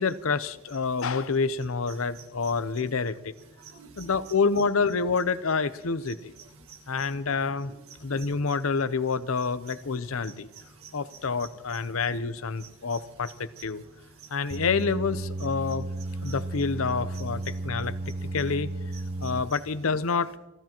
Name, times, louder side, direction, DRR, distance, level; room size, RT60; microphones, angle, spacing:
voice 1, 0.0-3.3 4.0-6.3 6.9-7.7 8.0-10.5 10.9-13.3 13.6-13.8 14.3-15.9 16.2-17.9 18.3-18.7 19.2-20.4, left 4 dB, 70° left, 15 dB, 0.7 m, -28 dB
voice 2, 3.6-4.6 6.4-7.1 7.7-8.3 9.7-9.8 10.2-11.5 12.6-13.3 14.5-14.6 16.2-16.4 17.1-17.5 18.9-19.6, right 6 dB, 75° right, 2 dB, 1.7 m, -49 dB
sound 1, 14.5-19.4, right 2 dB, 35° right, 0.7 m, -33 dB
29.0 x 13.0 x 3.0 m, 1.0 s
head